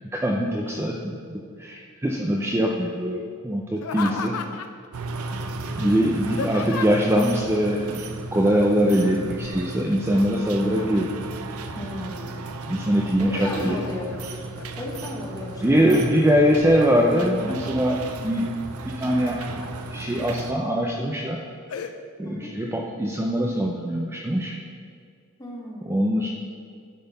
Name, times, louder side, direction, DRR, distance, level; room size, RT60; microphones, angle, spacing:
voice 1, 0.1-4.4 5.8-11.1 12.7-13.8 15.6-18.5 18.8-19.4 19.9-21.4 22.2-24.6 25.8-26.3, equal, 10° right, -1 dB, 0.4 m, -22 dB
Laughter, 3.8-4.9 5.8-7.2 8.9-9.4 9.7-11.3 11.8-12.5 12.9-14.2 14.6-15.2 15.7-16.4 16.9-17.8 18.9-19.7 20.2-20.3 20.9-21.1 21.7-21.9, left 5 dB, 70° left, 0.4 m, -36 dB
voice 2, 4.0-4.3 6.0-6.5 11.7-12.4 13.2-14.5 14.8-16.8 22.2-22.6 25.4-26.0, left 1 dB, 15° left, -2 dB, 1.0 m, -35 dB
sound 1, 4.9-20.5, right 2 dB, 70° right, 0.5 m, -35 dB
10.5 x 3.9 x 4.0 m, 2.2 s
head